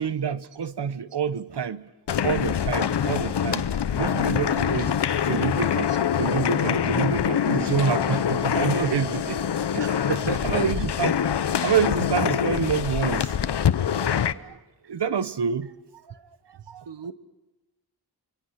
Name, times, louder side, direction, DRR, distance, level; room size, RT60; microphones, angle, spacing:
voice 1, 0.0-1.8 2.2-3.7 3.9-4.9 5.2-9.4 9.7-10.1 10.4-11.1 11.6-13.4 13.9-14.6 14.8-15.7 16.1-16.2 16.7-16.8, right 7 dB, 70° right, 14 dB, 1.2 m, -27 dB
sound 1, 2.1-14.3, left 8 dB, 75° left, 0.9 m, -24 dB
voice 2, 9.8-10.6 16.7-17.1, right 6 dB, 85° right, 13 dB, 1.3 m, -32 dB
29.0 x 23.5 x 6.0 m, 1.1 s
cardioid pair, 50°, 42 cm